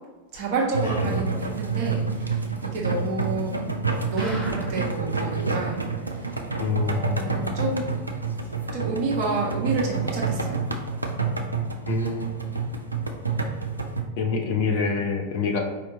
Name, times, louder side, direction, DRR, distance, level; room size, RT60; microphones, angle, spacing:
voice 1, 0.3-3.5 4.1-5.8 6.2-6.3 6.8-7.8 8.7-10.6, right 3 dB, 45° right, -3 dB, 1.2 m, -29 dB
sound 1, 0.7-14.0, right 4 dB, 85° right, 0.4 m, -28 dB
voice 2, 0.8-1.3 6.6-7.3 11.9-12.4 14.2-15.6, left 4 dB, 50° left, 2 dB, 0.6 m, -26 dB
sound 2, 4.2-5.0 5.4-5.5 5.7-5.8 6.3-6.4, equal, 5° right, 1.3 m, -38 dB
4.6 x 2.9 x 3.0 m, 1.3 s
figure-of-eight pair, 90°, 0 cm